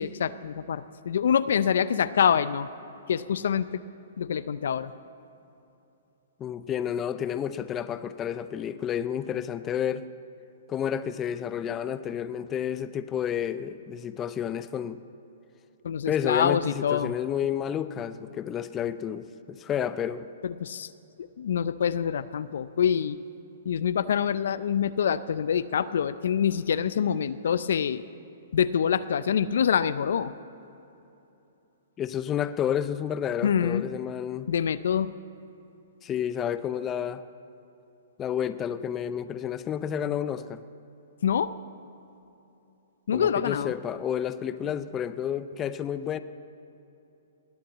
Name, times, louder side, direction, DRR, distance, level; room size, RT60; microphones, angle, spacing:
voice 1, 0.0-2.7 3.1-3.8 4.2-4.9 15.8-17.1 20.4-20.9 21.2-23.2 23.6-28.0 28.5-30.3 33.4-33.9 34.5-35.1 41.2-41.5 43.1-43.7, left 8 dB, 70° left, 15 dB, 0.5 m, -26 dB
voice 2, 6.4-10.1 10.7-15.0 16.1-20.3 32.0-34.5 36.0-37.2 38.2-40.6 43.1-46.2, left 9 dB, 20° left, 13 dB, 0.5 m, -30 dB
19.5 x 8.7 x 7.3 m, 2.9 s
hypercardioid pair, 135°, 0 cm